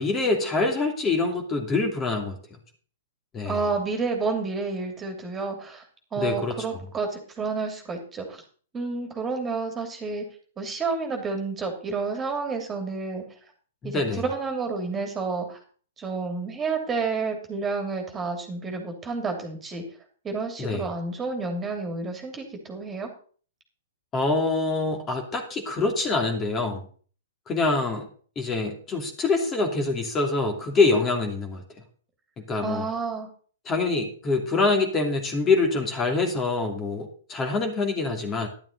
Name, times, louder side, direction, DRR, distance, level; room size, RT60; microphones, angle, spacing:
voice 1, 0.0-2.4 3.3-3.6 6.2-6.8 13.8-14.2 20.6-20.9 24.1-26.8 27.5-28.1 28.4-31.6 32.5-32.9 33.6-38.5, left 3 dB, 20° left, 3 dB, 2.8 m, -25 dB
voice 2, 3.4-5.8 6.1-8.4 8.7-10.3 10.6-13.2 13.8-15.6 16.0-19.8 20.2-23.1 32.6-33.3, right 4 dB, 20° right, 4 dB, 2.9 m, -30 dB
12.0 x 11.5 x 4.0 m, 0.43 s
figure-of-eight pair, 110°, 0 cm